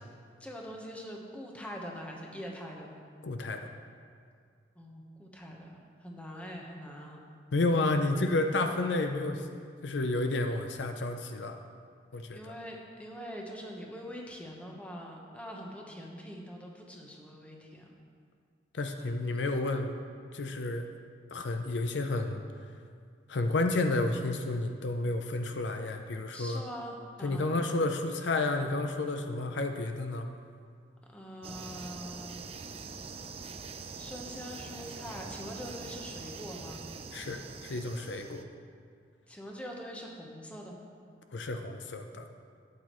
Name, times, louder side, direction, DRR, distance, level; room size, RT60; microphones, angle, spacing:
voice 1, 0.4-3.1 4.7-7.2 12.3-17.9 26.3-27.5 31.1-32.4 34.0-36.8 39.3-40.9, equal, 10° left, -1 dB, 1.1 m, -43 dB
voice 2, 3.2-3.7 7.5-9.4 9.8-11.6 12.1-12.5 18.7-19.9 20.3-20.9 21.3-22.4 23.3-26.6 27.2-30.3 37.1-38.4 41.3-42.3, left 2 dB, 80° left, 6 dB, 0.6 m, -31 dB
sound 1, 31.4-38.4, right 4 dB, 35° right, 0.4 m, -44 dB
12.5 x 8.4 x 3.1 m, 2.1 s
head